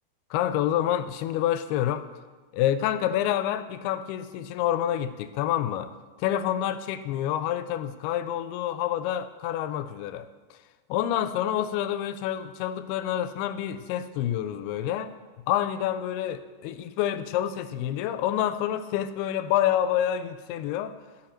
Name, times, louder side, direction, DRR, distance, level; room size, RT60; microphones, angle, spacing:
voice 1, 0.3-2.1 2.5-5.9 6.2-10.6 10.9-15.1 15.5-21.0, left 11 dB, 85° left, 2.4 m, -28 dB
13.0 x 7.0 x 4.4 m
omnidirectional pair, 4.6 m